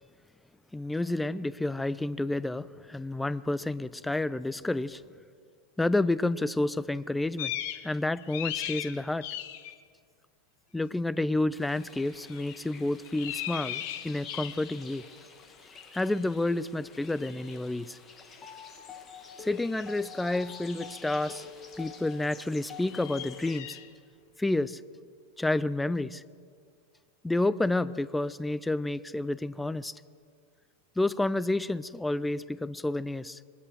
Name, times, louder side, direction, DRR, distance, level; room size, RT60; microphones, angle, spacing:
voice 1, 0.7-5.0 5.8-7.5 7.8-9.3 10.7-15.0 15.9-18.0 19.4-21.4 21.8-23.8 24.4-24.8 25.4-26.2 27.2-29.9 31.0-33.4, left 2 dB, 5° left, 0.5 m, -30 dB
sound 1, 7.4-7.9 8.2-9.7 12.3-12.6 13.1-14.8 17.5-17.6 19.5-19.9 22.8-23.9, left 12 dB, 50° left, 1.0 m, -37 dB
sound 2, 11.6-23.6, left 5 dB, 25° left, 2.0 m, -48 dB
22.0 x 19.5 x 6.3 m
figure-of-eight pair, 90°, 0 cm